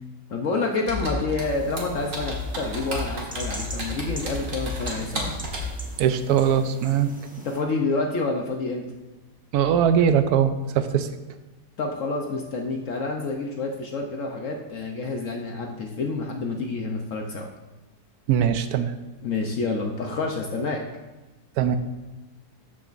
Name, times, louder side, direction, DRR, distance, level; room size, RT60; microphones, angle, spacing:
voice 1, 0.3-5.3 7.4-8.8 11.8-17.5 19.2-20.8, left 3 dB, 60° left, 2 dB, 1.0 m, -28 dB
Computer keyboard, 0.9-5.8, left 1 dB, 50° right, 1.9 m, -31 dB
sound 1, 1.4-7.6, right 1 dB, 10° right, 0.6 m, -43 dB
voice 2, 6.0-7.1 9.5-11.1 18.3-18.9 21.6-21.8, right 8 dB, 75° right, 10 dB, 1.0 m, -21 dB
14.0 x 6.1 x 2.5 m, 1.1 s
omnidirectional pair, 1.8 m